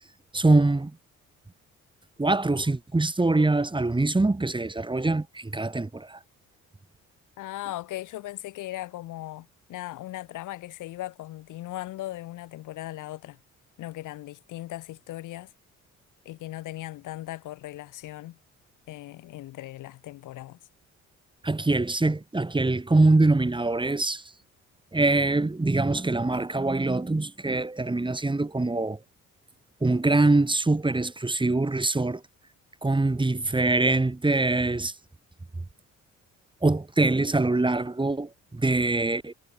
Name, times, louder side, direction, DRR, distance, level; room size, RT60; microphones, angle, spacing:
voice 1, 0.3-1.0 2.2-6.2 21.4-24.2 24.9-29.0 29.8-32.2 32.8-34.9 36.6-39.3, right 2 dB, 15° right, 3.3 m, -24 dB
voice 2, 7.4-13.4 13.8-15.5 16.3-18.4 18.9-20.6, left 15 dB, 90° left, 3.7 m, -38 dB
cardioid pair, 90°, 30 cm